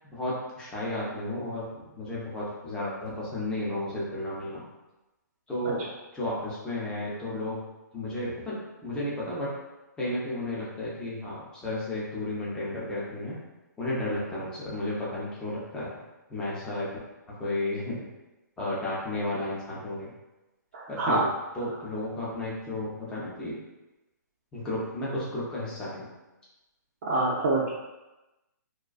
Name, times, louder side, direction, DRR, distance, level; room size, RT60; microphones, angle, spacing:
voice 1, 0.1-4.6 5.5-5.8 6.1-7.6 7.9-9.5 10.0-13.4 13.8-15.9 16.3-16.9 17.3-18.1 18.6-20.1 20.9-21.3 21.5-23.6 24.5-26.1, left 1 dB, 10° left, -7 dB, 0.6 m, -33 dB
voice 2, 20.7-21.2 27.0-27.7, right 2 dB, 45° right, -6 dB, 0.4 m, -26 dB
2.4 x 2.3 x 2.3 m, 1.0 s
hypercardioid pair, 145°, 10 cm